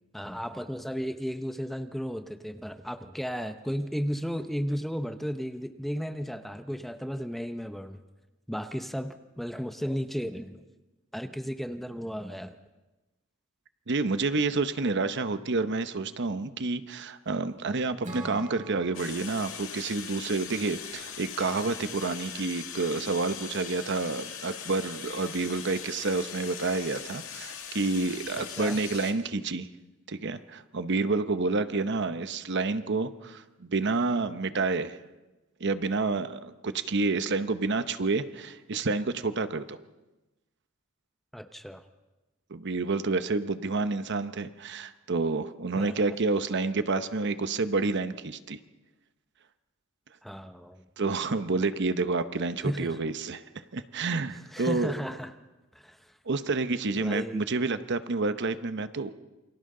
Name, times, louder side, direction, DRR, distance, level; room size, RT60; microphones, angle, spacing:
voice 1, 0.1-8.0 8.5-10.6 11.1-12.6 28.4-28.8 41.3-41.8 45.8-46.2 50.2-50.9 52.6-53.0 54.5-55.3 55.7-56.1 57.0-57.6, equal, ahead, 8 dB, 0.8 m, -34 dB
voice 2, 13.9-29.7 30.1-35.0 35.6-39.8 42.5-48.6 51.0-53.4 53.7-54.9 56.3-59.1, right 3 dB, 60° right, 11 dB, 0.9 m, -29 dB
Acoustic guitar / Strum, 18.0-21.5, right 2 dB, 40° right, 5.4 m, -45 dB
sound 1, 18.9-29.1, left 8 dB, 85° left, 2.1 m, -41 dB
28.0 x 25.0 x 3.9 m, 1.1 s
head